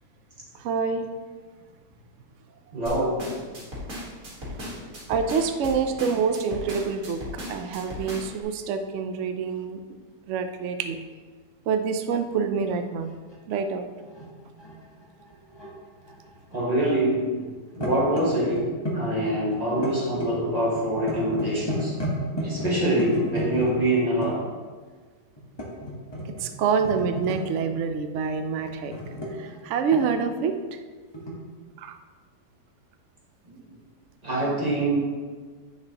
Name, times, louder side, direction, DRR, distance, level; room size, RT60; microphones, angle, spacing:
voice 1, 0.6-1.1 5.1-7.2 7.5-9.8 10.3-11.0 11.7-13.1 13.5-13.9 26.4-29.0 29.4-30.6 31.8-32.0, right 6 dB, 75° right, 8 dB, 0.6 m, -26 dB
voice 2, 2.7-3.2 4.4-4.8 16.5-17.5 17.8-18.6 18.9-21.9 22.4-24.3 33.5-33.6 34.2-35.0, right 1 dB, 25° right, -6 dB, 1.7 m, -25 dB
sound 1, 2.9-8.4, left 1 dB, 50° right, 2.1 m, -36 dB
sound 2, 12.6-12.8 13.3-15.7 16.1-17.2 17.5-24.3 25.4-26.4 26.8-27.6 28.7-30.3 31.1-31.3, equal, 20° left, 1.0 m, -33 dB
9.3 x 5.0 x 2.9 m, 1.5 s
omnidirectional pair, 1.8 m